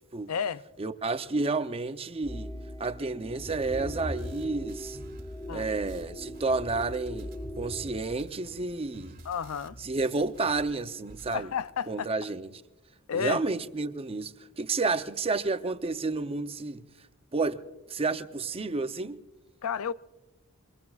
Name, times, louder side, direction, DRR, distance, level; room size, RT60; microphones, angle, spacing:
voice 1, 0.3-0.6 5.5-5.7 9.2-9.8 11.3-12.1 13.1-13.4 19.6-19.9, left 7 dB, 75° left, 0.5 m, -31 dB
voice 2, 0.8-2.5 2.8-5.0 5.5-9.2 9.8-11.5 11.9-12.5 13.1-16.8 17.3-17.6 17.9-19.2, right 3 dB, 25° right, 0.6 m, -30 dB
sound 1, 2.2-7.8, equal, 15° left, 1.1 m, -39 dB
sound 2, 3.4-10.7 11.0-11.4, right 1 dB, 45° right, 2.0 m, -48 dB
25.0 x 21.5 x 2.4 m
head